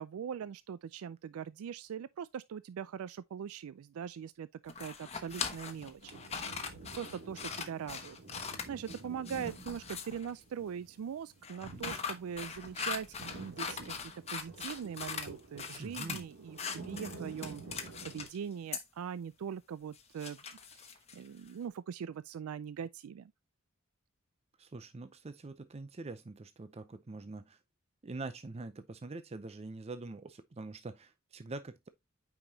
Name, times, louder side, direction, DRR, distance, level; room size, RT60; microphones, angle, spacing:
voice 1, 0.0-6.1 6.9-20.4 20.7-23.3, right 8 dB, 85° right, 0.3 m, -42 dB
sound 1, 4.7-10.3 11.4-15.3 15.6-16.2 16.6-18.4 18.7-18.8 19.9-21.5, left 5 dB, 30° left, 1.1 m, -41 dB
sound 2, 6.0-18.3, right 3 dB, 65° right, 2.8 m, -50 dB
voice 2, 15.8-16.2 24.6-27.6 28.0-31.9, right 3 dB, 30° right, 0.5 m, -44 dB
9.0 x 4.9 x 2.7 m
head